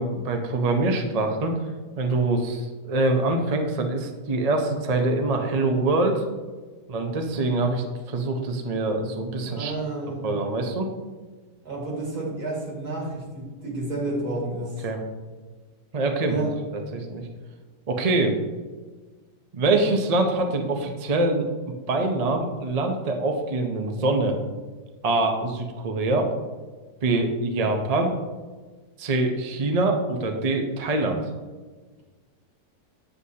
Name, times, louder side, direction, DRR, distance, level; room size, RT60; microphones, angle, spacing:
voice 1, 0.0-1.5 2.0-6.2 6.9-9.8 10.2-10.9 14.8-15.0 15.9-16.4 16.7-17.3 17.9-18.4 19.5-21.5 21.9-24.4 25.0-26.3 27.0-28.2 29.0-31.2, right 2 dB, 45° right, 4 dB, 0.5 m, -24 dB
voice 2, 9.4-10.3 11.6-14.7 16.2-16.5, right 2 dB, 65° right, -2 dB, 2.4 m, -30 dB
8.1 x 7.8 x 2.8 m, 1.3 s
omnidirectional pair, 1.8 m